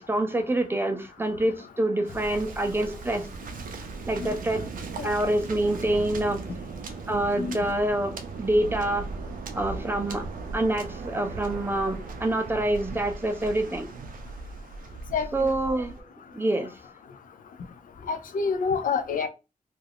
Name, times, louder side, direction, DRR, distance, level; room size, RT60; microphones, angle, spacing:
voice 1, 0.0-3.3 4.1-4.6 5.0-6.4 7.1-9.1 9.5-10.2 10.5-13.9 15.3-16.0 16.3-16.7, right 1 dB, 15° right, 0.4 m, -26 dB
Waves surf, 2.1-16.0, right 4 dB, 80° right, 0.4 m, -38 dB
voice 2, 15.1-15.5 18.1-19.3, left 5 dB, 75° left, 0.4 m, -28 dB
2.4 x 2.3 x 3.3 m
wide cardioid pair, 140°, 14 cm